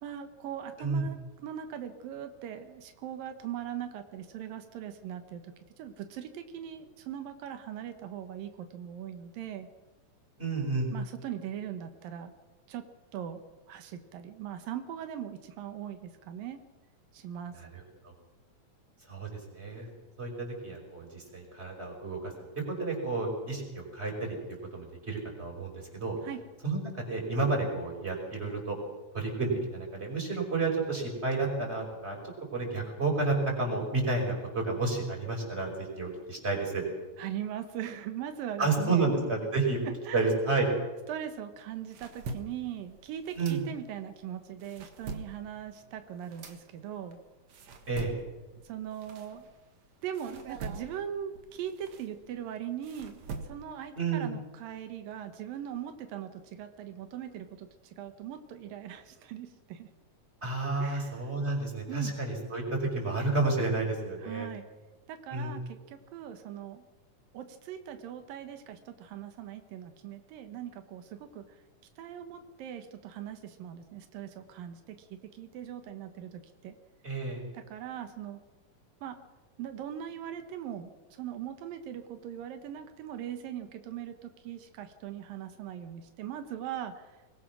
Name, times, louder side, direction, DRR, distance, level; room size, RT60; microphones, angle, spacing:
voice 1, 0.0-9.7 10.9-12.3 12.7-12.9 13.1-13.4 13.7-16.6 17.1-17.6 26.2-26.4 37.2-39.1 40.1-40.3 41.1-47.2 48.6-49.5 50.0-59.9 60.8-61.2 61.9-62.1 64.2-64.6 65.1-66.8 67.3-71.6 72.0-76.7 77.5-78.4 79.0-79.2 79.6-87.2, right 10 dB, 90° right, 8 dB, 3.0 m, -40 dB
voice 2, 10.4-10.9 17.6-17.8 19.1-19.9 20.2-22.3 22.7-24.4 24.7-26.2 26.6-28.8 29.1-32.2 32.5-36.8 38.6-39.8 40.1-40.7 43.4-43.6 47.9-48.1 54.0-54.3 60.4-64.5 65.3-65.5 77.0-77.4, right 3 dB, 15° right, 1 dB, 5.8 m, -31 dB
sound 1, 41.6-44.1 44.5-49.8 50.1-53.9, right 4 dB, 55° right, 2.6 m, -44 dB
23.0 x 21.0 x 6.2 m, 1.2 s
omnidirectional pair, 3.9 m